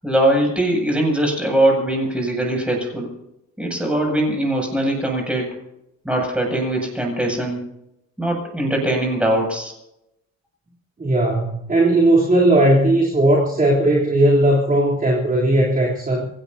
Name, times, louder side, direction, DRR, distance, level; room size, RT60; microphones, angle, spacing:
voice 1, 0.0-3.1 3.6-5.5 6.0-7.6 8.2-9.7, right 1 dB, 5° right, 0 dB, 7.8 m, -21 dB
voice 2, 11.0-16.3, right 1 dB, 30° right, -5 dB, 3.5 m, -17 dB
26.5 x 17.0 x 2.9 m, 0.84 s
cardioid pair, 115°, 30 cm